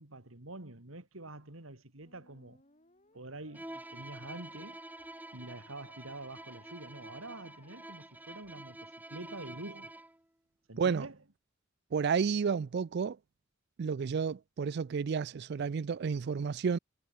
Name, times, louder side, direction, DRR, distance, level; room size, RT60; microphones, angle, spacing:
voice 1, 0.0-2.6 3.1-9.9 10.7-11.2, right 2 dB, 80° right, 2.9 m, -47 dB
Musical instrument, 2.0-8.9, left 4 dB, 35° left, 6.8 m, -64 dB
Bowed string instrument, 3.5-10.2, right 1 dB, 10° right, 1.8 m, -48 dB
voice 2, 10.8-11.1 11.9-13.2 13.8-16.8, right 6 dB, 55° right, 0.4 m, -31 dB
head